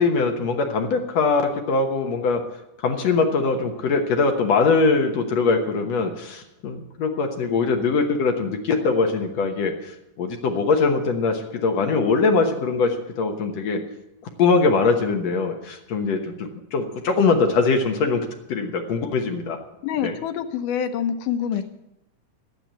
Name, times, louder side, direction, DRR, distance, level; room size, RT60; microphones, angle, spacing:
voice 1, 0.0-2.4 2.8-13.8 14.4-19.6 20.0-20.1, left 4 dB, 65° left, 4 dB, 2.1 m, -22 dB
voice 2, 19.8-21.6, left 8 dB, 85° left, 9 dB, 2.4 m, -26 dB
12.0 x 9.1 x 8.1 m, 0.90 s
omnidirectional pair, 3.6 m